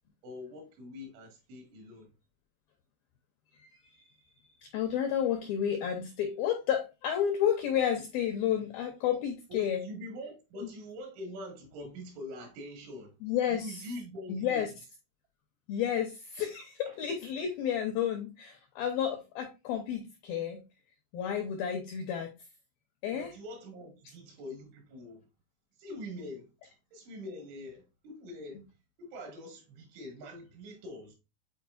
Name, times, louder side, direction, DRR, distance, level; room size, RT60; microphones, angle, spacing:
voice 1, 0.2-2.1 9.5-13.2 13.5-14.7 16.9-17.0 23.1-25.3 25.8-28.7 29.0-31.2, left 1 dB, 85° right, 4.5 m, -44 dB
voice 2, 3.6-4.1 4.6-9.9 10.6-10.7 13.2-13.8 14.3-14.7 15.7-20.6 21.1-22.3 23.0-23.3, left 9 dB, 90° left, 2.1 m, -31 dB
9.3 x 4.3 x 2.5 m
omnidirectional pair, 5.4 m